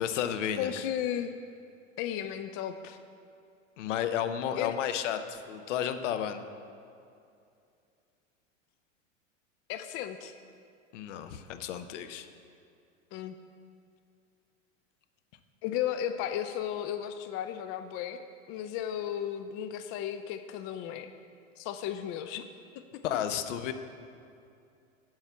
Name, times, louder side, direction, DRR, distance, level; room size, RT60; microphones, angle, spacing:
voice 1, 0.0-0.9 3.8-6.4 10.9-12.3 23.0-23.7, left 9 dB, 70° left, 9 dB, 0.7 m, -32 dB
voice 2, 0.6-1.4 2.0-3.0 4.6-4.8 9.7-10.3 13.1-13.4 15.6-18.2 18.5-21.1 21.6-22.5 22.8-23.0, left 10 dB, 35° left, 9 dB, 0.4 m, -34 dB
7.5 x 4.8 x 7.0 m, 2.5 s
hypercardioid pair, 95°, 39 cm